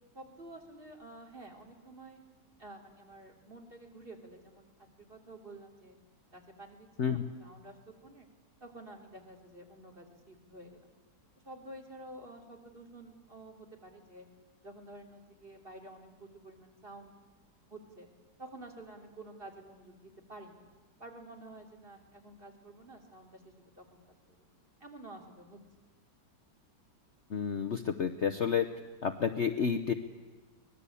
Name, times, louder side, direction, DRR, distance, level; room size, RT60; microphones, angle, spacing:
voice 1, 0.1-2.2 2.6-4.7 5.0-6.0 6.3-8.3 8.6-10.9 11.4-14.2 14.6-17.2 17.7-18.1 18.4-20.6 21.0-24.0 24.3-24.4 24.8-25.6, right 2 dB, 30° right, 1 dB, 3.3 m, -50 dB
voice 2, 27.3-28.7 29.0-29.9, left 7 dB, 50° left, 6 dB, 1.0 m, -30 dB
24.0 x 20.0 x 8.5 m, 1.3 s
omnidirectional pair, 1.9 m